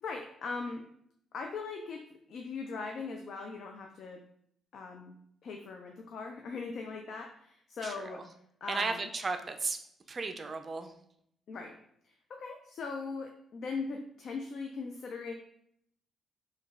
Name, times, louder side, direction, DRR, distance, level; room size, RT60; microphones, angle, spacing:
voice 1, 0.0-0.8 1.3-4.2 4.7-5.1 5.4-8.2 8.6-9.1 11.5-11.8 12.0-15.3, left 4 dB, 60° left, 2 dB, 0.3 m, -40 dB
voice 2, 7.8-8.3 8.7-9.8 10.1-10.9, right 4 dB, 35° right, 7 dB, 0.4 m, -35 dB
3.0 x 2.2 x 3.5 m, 0.70 s
cardioid pair, 90°, 0 cm